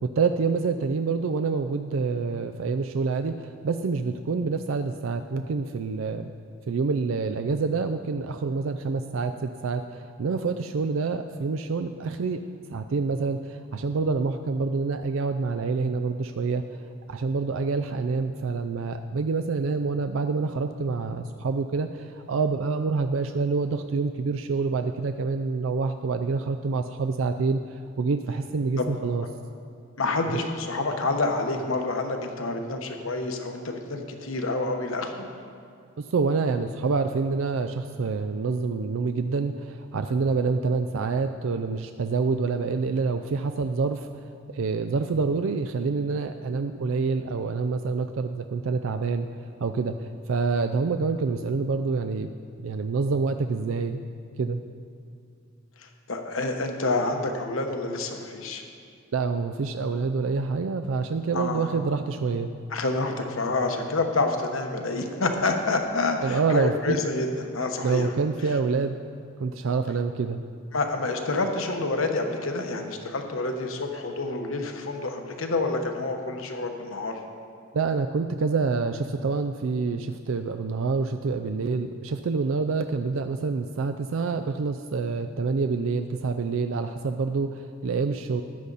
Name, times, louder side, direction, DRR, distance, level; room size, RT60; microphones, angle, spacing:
voice 1, 0.0-6.3 6.7-12.4 12.7-16.6 17.1-29.3 36.0-44.2 44.5-49.3 49.6-52.3 52.6-54.0 54.4-54.6 59.1-62.5 66.2-67.0 67.8-69.0 69.4-70.4 77.7-88.4, right 4 dB, 70° right, 7 dB, 0.4 m, -27 dB
voice 2, 30.0-35.3 55.8-58.6 61.3-61.7 62.7-68.1 70.7-77.2, left 3 dB, 80° left, 4 dB, 1.1 m, -28 dB
13.5 x 9.9 x 4.0 m, 2.4 s
head